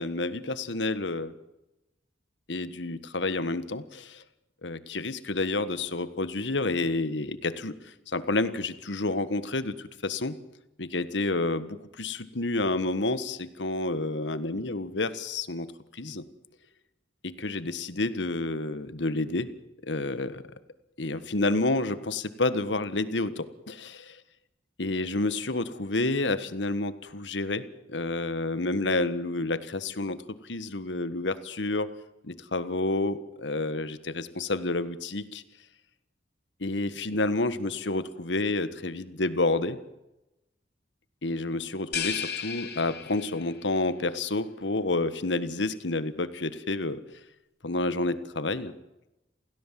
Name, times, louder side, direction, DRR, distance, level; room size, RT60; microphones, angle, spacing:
voice 1, 0.0-1.3 2.5-4.2 4.6-10.3 10.8-15.7 15.9-16.2 17.2-19.5 19.8-20.4 21.0-24.2 24.8-27.6 27.9-31.9 32.2-35.4 36.6-39.8 41.2-47.0 47.6-48.7, left 2 dB, 90° left, 12 dB, 1.5 m, -29 dB
sound 1, 41.9-43.6, left 7 dB, 60° left, 3.3 m, -34 dB
28.0 x 17.0 x 7.6 m, 0.96 s
head